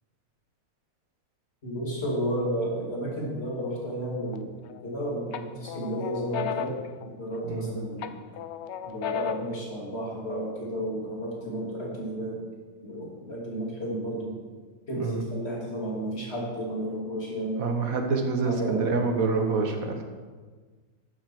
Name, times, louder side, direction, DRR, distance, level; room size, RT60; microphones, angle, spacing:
voice 1, 1.6-4.6 4.8-8.2 8.8-12.4 12.8-14.4 14.9-17.6 18.4-19.0, right 1 dB, 45° left, -3 dB, 3.0 m, -32 dB
sound 1, 4.3-4.9 5.3-7.6 8.0-9.6, left 9 dB, 65° left, 0.7 m, -35 dB
voice 2, 17.6-20.0, right 4 dB, 75° right, 5 dB, 1.7 m, -27 dB
12.5 x 7.6 x 6.0 m, 1.4 s
omnidirectional pair, 1.5 m